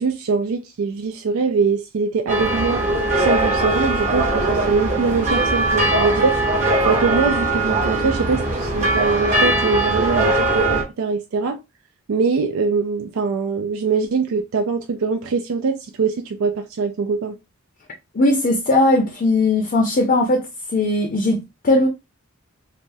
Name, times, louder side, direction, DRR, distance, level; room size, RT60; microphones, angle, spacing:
voice 1, 0.0-2.8 3.2-6.4 6.9-11.6 12.1-17.4, right 4 dB, 80° right, 0.4 m, -22 dB
sound 1, 2.3-10.8, right 2 dB, 35° right, 1.0 m, -20 dB
voice 2, 18.1-20.5 20.7-21.9, left 2 dB, 45° left, 0.5 m, -18 dB
3.3 x 2.0 x 2.5 m
head